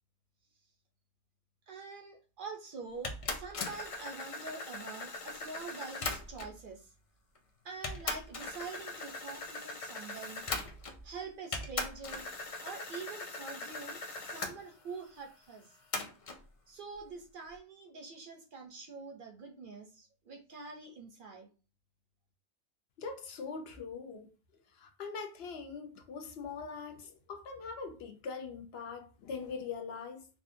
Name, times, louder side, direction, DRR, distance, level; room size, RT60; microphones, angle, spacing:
voice 1, 1.7-6.9 7.6-10.4 11.0-12.3 12.6-15.7 16.7-21.5, right 4 dB, 60° right, 0.6 m, -45 dB
sound 1, 3.0-6.6 7.3-7.4 7.8-11.1 11.5-14.5 15.9-16.4, left 3 dB, 55° left, 0.4 m, -40 dB
voice 2, 23.0-24.3 24.7-30.2, left 5 dB, 70° left, 0.8 m, -42 dB
3.5 x 2.4 x 2.5 m
omnidirectional pair, 1.1 m